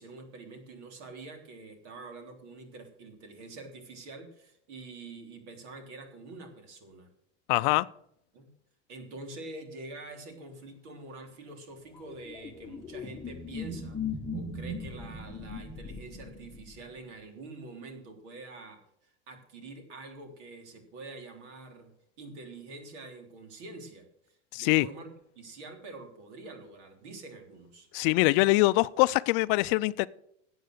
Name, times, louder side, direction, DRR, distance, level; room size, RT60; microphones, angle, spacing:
voice 1, 0.0-7.1 8.3-8.5 8.9-14.0 14.3-21.9 22.2-27.9, right 3 dB, 75° right, 5 dB, 3.4 m, -46 dB
voice 2, 7.5-7.9 24.5-24.9 27.9-30.1, left 21 dB, 50° left, 16 dB, 0.5 m, -23 dB
sound 1, 12.0-17.0, left 3 dB, 10° left, 0.9 m, -39 dB
12.5 x 8.0 x 6.5 m, 0.73 s
supercardioid pair, 140°, 35 cm